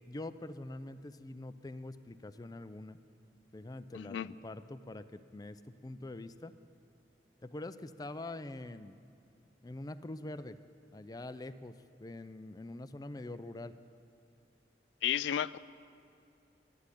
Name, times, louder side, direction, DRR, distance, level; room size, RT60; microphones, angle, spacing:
voice 1, 0.1-3.0 3.5-6.5 7.4-9.0 9.6-10.6 10.9-11.7 12.0-13.7, left 2 dB, 20° left, 12 dB, 0.4 m, -44 dB
voice 2, 4.0-4.3 15.0-15.6, left 10 dB, 90° left, 17 dB, 0.3 m, -33 dB
12.0 x 10.5 x 9.8 m, 2.5 s
head